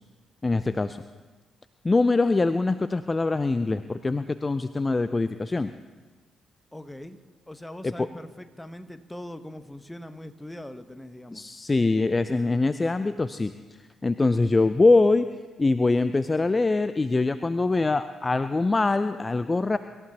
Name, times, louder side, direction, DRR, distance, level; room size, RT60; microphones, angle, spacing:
voice 1, 0.4-1.0 1.8-5.7 7.8-8.1 11.3-13.5 14.0-15.3 15.6-19.8, left 3 dB, 30° left, 12 dB, 0.5 m, -23 dB
voice 2, 6.7-7.2 7.5-11.4, left 1 dB, 10° left, 10 dB, 1.1 m, -41 dB
24.5 x 14.0 x 2.9 m, 1.3 s
hypercardioid pair, 40°, 0 cm